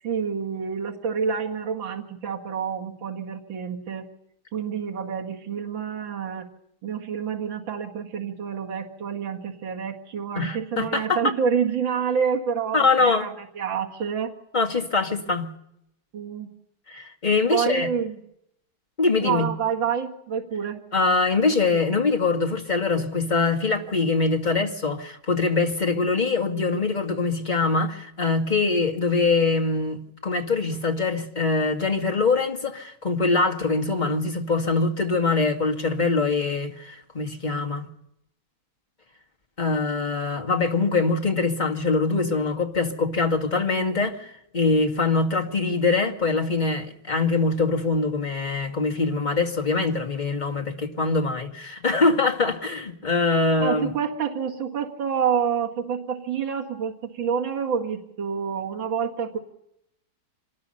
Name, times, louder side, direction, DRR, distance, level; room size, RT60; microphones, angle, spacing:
voice 1, 0.0-4.0 4.5-6.5 6.8-14.3 16.1-16.5 17.5-18.2 19.2-20.8 53.6-59.4, right 7 dB, 70° right, 2.8 m, -28 dB
voice 2, 10.4-11.2 12.7-13.3 14.5-15.5 16.9-17.9 19.0-19.5 20.9-37.9 39.6-53.9, left 3 dB, 20° left, 2.1 m, -23 dB
26.0 x 19.5 x 5.6 m
omnidirectional pair, 2.2 m